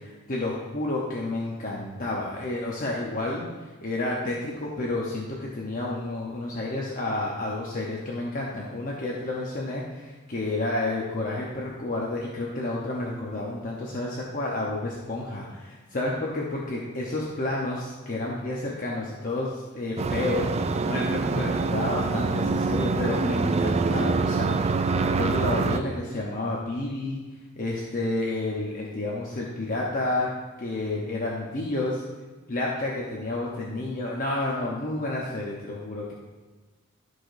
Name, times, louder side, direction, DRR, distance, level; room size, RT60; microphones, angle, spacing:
voice 1, 0.3-27.2 27.6-30.3 30.6-32.0 32.5-36.1, left 2 dB, 40° left, -4 dB, 0.9 m, -30 dB
sound 1, 20.0-25.8, right 4 dB, 30° right, 0.3 m, -25 dB
14.0 x 5.0 x 2.7 m, 1.3 s
head